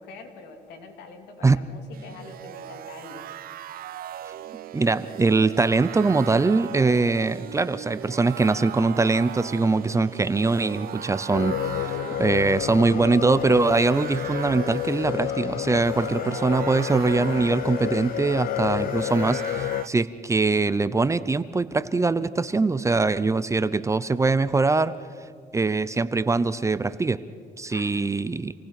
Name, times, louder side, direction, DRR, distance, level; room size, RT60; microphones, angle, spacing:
voice 1, 0.0-3.3 27.7-28.1, left 4 dB, 80° left, 4 dB, 3.0 m, -44 dB
sound 1, 1.9-19.9, right 11 dB, 60° right, 0.9 m, -39 dB
voice 2, 4.7-24.9 25.5-27.2 27.6-28.5, right 3 dB, 15° right, 15 dB, 0.7 m, -22 dB
sound 2, 11.3-19.8, left 13 dB, 60° left, 0.5 m, -30 dB
27.5 x 18.0 x 6.0 m, 2.2 s
cardioid pair, 110°, 17 cm